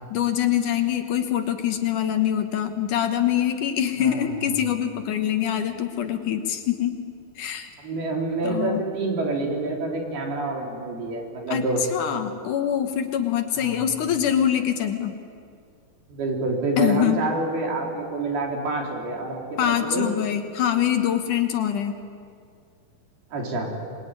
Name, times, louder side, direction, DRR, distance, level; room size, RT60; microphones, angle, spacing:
voice 1, 0.1-7.0 7.4-7.7 8.4-8.8 11.5-15.2 16.8-17.2 19.6-21.9, left 10 dB, 65° left, 7 dB, 2.5 m, -24 dB
voice 2, 7.8-11.8 13.6-13.8 16.1-20.1 23.3-23.7, right 2 dB, 85° right, 1 dB, 5.6 m, -27 dB
26.5 x 21.0 x 9.7 m, 2.3 s
omnidirectional pair, 4.3 m